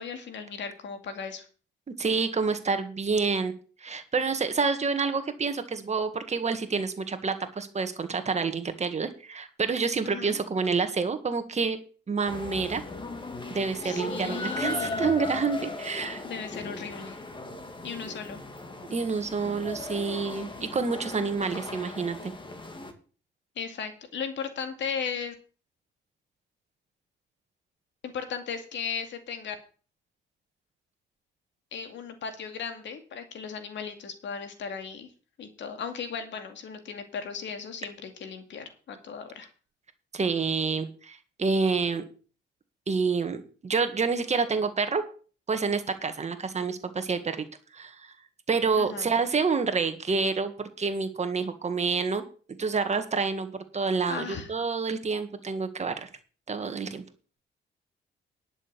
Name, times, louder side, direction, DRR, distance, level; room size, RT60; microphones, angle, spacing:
voice 1, 0.0-1.5 10.0-10.4 13.8-15.1 16.2-17.2 17.8-18.4 23.6-25.3 28.0-29.6 31.7-35.1 35.4-39.5 48.8-49.1 54.1-54.5, left 6 dB, 65° left, 7 dB, 2.3 m, -36 dB
voice 2, 2.0-3.5 3.8-11.8 12.1-12.8 13.5-16.2 18.9-22.3 40.1-42.0 42.9-45.0 45.5-47.4 47.7-48.1 48.5-52.2 52.6-56.1 56.5-57.0, right 4 dB, 35° right, 8 dB, 1.9 m, -28 dB
sound 1, 12.3-22.9, left 2 dB, 25° left, 2.2 m, -37 dB
11.0 x 6.5 x 6.9 m, 0.39 s
cardioid pair, 90°, 20 cm